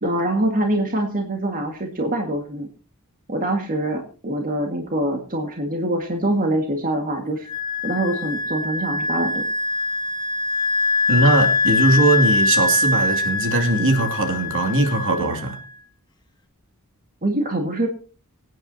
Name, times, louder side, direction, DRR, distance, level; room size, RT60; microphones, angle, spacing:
voice 1, 0.0-2.7 3.3-7.5 7.8-9.4 17.2-17.9, right 1 dB, 40° right, 3 dB, 1.9 m, -24 dB
Wind instrument woodwind instrument, 7.5-15.7, left 3 dB, 20° left, 1.9 m, -23 dB
voice 2, 11.1-15.6, right 2 dB, 60° right, 4 dB, 2.6 m, -20 dB
24.5 x 9.4 x 2.8 m, 0.36 s
head